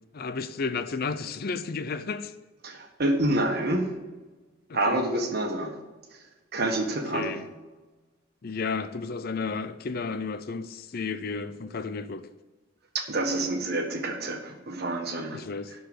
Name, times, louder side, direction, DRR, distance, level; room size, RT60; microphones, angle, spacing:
voice 1, 0.1-2.3 4.7-5.0 6.8-6.9 7.1-7.5 8.4-12.3 15.3-15.7, left 4 dB, 50° left, 0.5 m, -32 dB
voice 2, 2.6-3.9 4.7-5.8 6.5-7.3 12.9-15.4, right 1 dB, 50° right, 1.5 m, -27 dB
11.5 x 4.7 x 7.7 m
head